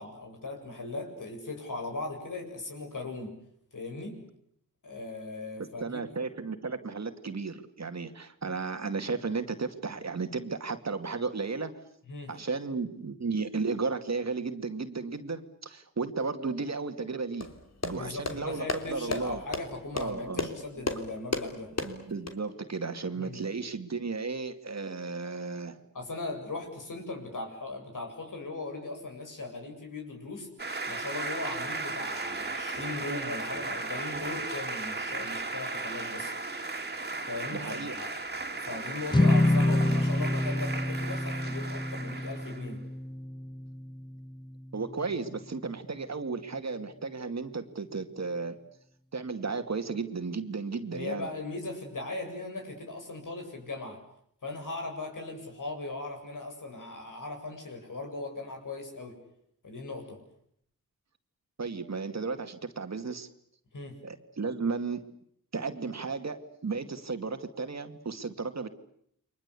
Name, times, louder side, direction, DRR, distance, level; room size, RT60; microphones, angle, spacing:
voice 1, 0.0-3.3 3.7-4.2 4.8-6.1 12.1-12.3 17.9-21.7 23.2-23.4 25.9-30.5 30.9-36.3 37.3-38.2 38.5-42.8 50.9-54.0 54.4-59.2 59.6-60.2 63.7-64.0, left 2 dB, 65° left, 3 dB, 7.9 m, -38 dB
voice 2, 5.8-11.7 12.3-17.5 17.8-19.4 19.9-20.5 21.8-25.8 37.5-37.9 44.7-48.6 49.1-51.3 61.6-63.3 64.0-65.1 65.5-68.7, right 4 dB, 50° right, 8 dB, 2.3 m, -34 dB
sound 1, 17.4-22.3, left 3 dB, 50° left, 3.4 m, -35 dB
sound 2, 30.6-42.7, right 3 dB, 30° right, 3.2 m, -36 dB
sound 3, 39.1-45.5, left 1 dB, 15° left, 1.2 m, -28 dB
30.0 x 23.5 x 8.4 m, 0.70 s
wide cardioid pair, 90°, 34 cm